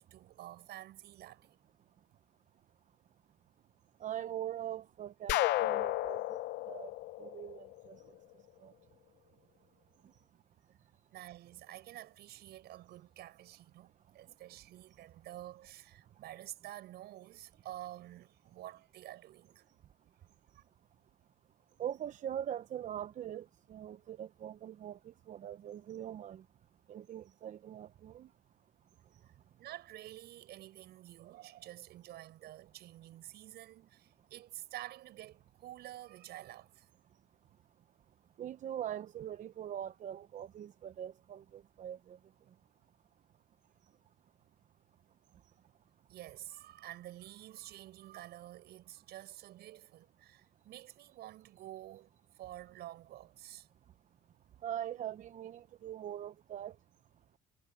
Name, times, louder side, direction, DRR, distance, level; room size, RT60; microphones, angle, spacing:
voice 1, 0.0-1.6 11.1-19.6 20.5-20.6 29.6-36.9 46.1-52.1 52.4-53.7, right 14 dB, 75° right, 7.8 m, -49 dB
voice 2, 4.0-6.4 6.7-6.9 7.2-8.0 8.6-8.7 21.8-26.4 26.9-28.3 38.4-42.2 54.6-56.7, right 10 dB, 50° right, 0.7 m, -42 dB
sound 1, 5.3-8.1, left 16 dB, 80° left, 0.9 m, -33 dB
cardioid pair, 110°, 17 cm